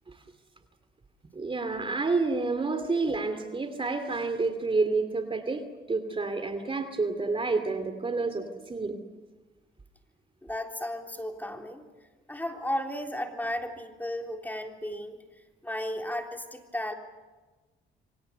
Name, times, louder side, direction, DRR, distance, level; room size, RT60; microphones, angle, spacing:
voice 1, 1.3-5.6 5.9-9.0, right 3 dB, 25° right, 8 dB, 2.6 m, -29 dB
voice 2, 10.4-11.8 12.3-15.2 15.6-16.9, left 1 dB, 10° left, 3 dB, 3.5 m, -34 dB
27.5 x 23.5 x 6.9 m, 1.2 s
cardioid pair, 90°, 20 cm